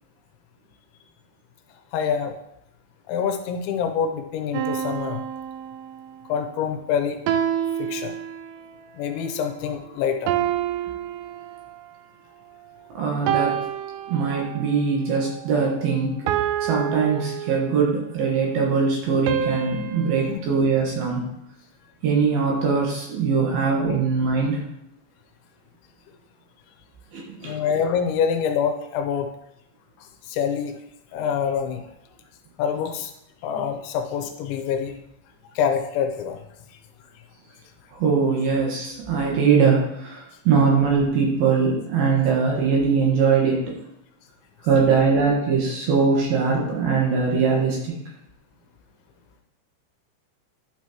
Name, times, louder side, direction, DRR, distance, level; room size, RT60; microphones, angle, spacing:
voice 1, 1.9-2.4 3.1-5.2 6.3-7.2 7.8-8.2 9.0-10.3 20.3-20.4 23.9-24.0 27.4-29.3 30.0-30.8 31.1-31.9 32.6-33.1 33.4-35.0 35.6-36.4 36.7-36.8, left 7 dB, 85° left, 5 dB, 3.0 m, -26 dB
sound 1, 4.5-6.2 7.3-8.8 10.3-11.9 13.3-14.8 16.3-18.0 19.3-20.3, right 10 dB, 85° right, 2.4 m, -28 dB
voice 2, 12.9-13.6 14.1-16.2 16.6-21.2 22.0-24.6 27.1-27.6 38.0-43.8 44.6-47.9, right 5 dB, 65° right, -2 dB, 2.8 m, -21 dB
11.5 x 6.0 x 3.0 m, 0.80 s
omnidirectional pair, 5.4 m